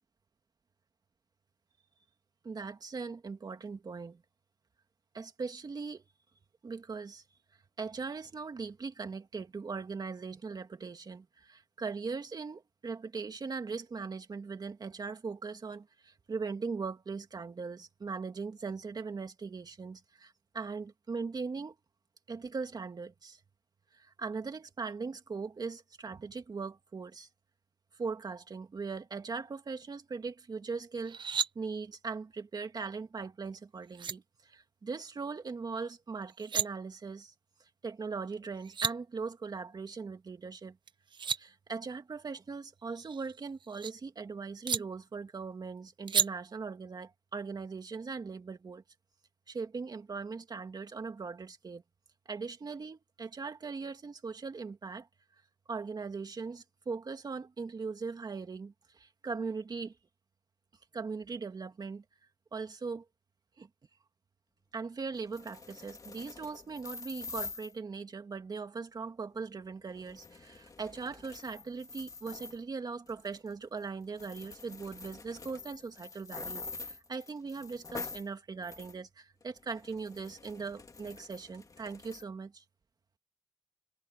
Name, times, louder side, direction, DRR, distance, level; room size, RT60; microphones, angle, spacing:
voice 1, 2.4-4.2 5.1-6.0 6.6-7.2 7.8-21.8 22.3-23.4 23.9-27.3 28.0-37.3 37.6-40.8 41.4-48.8 49.5-51.8 52.3-55.1 55.7-60.0 60.9-62.0 62.5-63.0 63.6-63.7 64.7-82.6, right 4 dB, 55° right, 2.5 m, -40 dB
sound 1, 31.0-31.5 33.5-33.6 33.9-34.1 36.2-36.7 38.3-38.4 38.6-38.9 40.9-41.4 42.9-43.9 44.7-44.8 46.1-46.3, right 7 dB, 75° right, 0.7 m, -32 dB
sound 2, 65.1-67.7 69.9-72.6 73.1-73.5 73.8-73.9 74.1-78.3 78.6-78.9 79.4-82.2, left 4 dB, 45° left, 2.6 m, -46 dB
wide cardioid pair, 90°, 8 cm